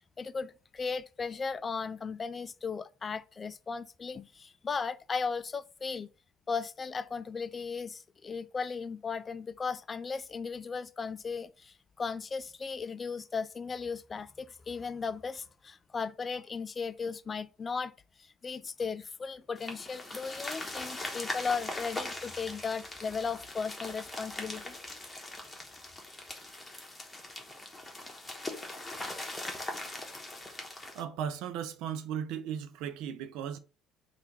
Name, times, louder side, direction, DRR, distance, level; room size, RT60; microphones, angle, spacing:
voice 1, 0.2-6.1 6.5-17.9 18.2-24.7, left 5 dB, 30° left, 0.4 m, -36 dB
sound 1, 19.6-31.0, left 2 dB, 15° left, 1.2 m, -41 dB
voice 2, 30.9-33.6, right 8 dB, 75° right, 0.5 m, -36 dB
3.4 x 2.5 x 4.5 m
supercardioid pair, 95°, 0 cm